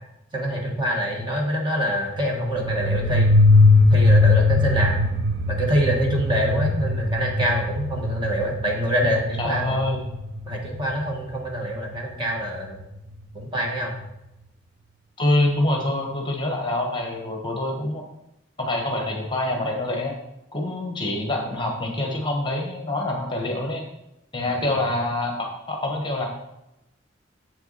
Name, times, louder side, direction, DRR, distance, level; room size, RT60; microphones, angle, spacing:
voice 1, 0.3-3.3 3.9-5.0 5.5-9.8 10.5-12.8 13.3-14.0 24.4-24.8, equal, 25° right, 0 dB, 1.5 m, -25 dB
sound 1, 2.6-11.0, left 2 dB, 60° right, 0.7 m, -20 dB
voice 2, 9.0-10.1 15.2-18.0 18.6-20.1 20.5-23.8 24.3-26.3, left 1 dB, 25° left, 1 dB, 1.2 m, -26 dB
8.1 x 7.6 x 4.1 m, 0.89 s
head